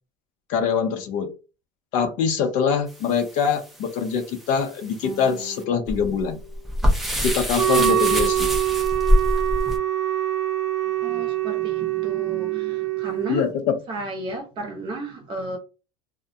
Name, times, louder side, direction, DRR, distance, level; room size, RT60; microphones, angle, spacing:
voice 1, 0.5-1.3 1.9-6.4 7.2-8.5 13.3-13.8, left 6 dB, 55° left, 0.5 m, -24 dB
sound 1, 2.9-9.8, equal, ahead, 0.4 m, -26 dB
sound 2, 5.0-7.6, left 2 dB, 20° left, 0.8 m, -43 dB
Wind instrument woodwind instrument, 7.5-13.4, right 12 dB, 85° right, 0.5 m, -24 dB
voice 2, 11.0-13.4 13.9-15.6, right 2 dB, 30° right, 0.7 m, -33 dB
2.3 x 2.1 x 2.6 m
supercardioid pair, 145°, 16 cm